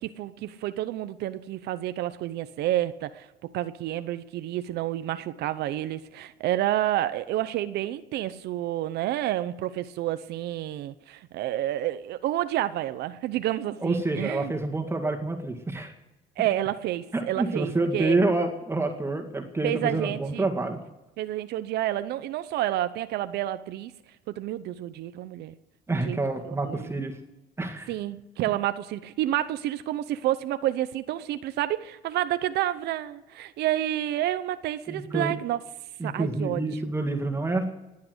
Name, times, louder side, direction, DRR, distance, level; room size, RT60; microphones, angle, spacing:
voice 1, 0.0-14.5 16.4-18.2 19.6-20.4 21.2-23.9 24.3-25.5 25.9-26.2 26.4-26.9 27.9-35.6 36.0-36.7, right 13 dB, 75° right, 0.8 m, -29 dB
voice 2, 13.8-15.9 17.1-20.8 25.9-27.2 27.6-27.9 34.9-35.3 36.0-37.7, right 2 dB, 15° right, 2.0 m, -28 dB
20.0 x 8.6 x 8.0 m
cardioid pair, 110°, 17 cm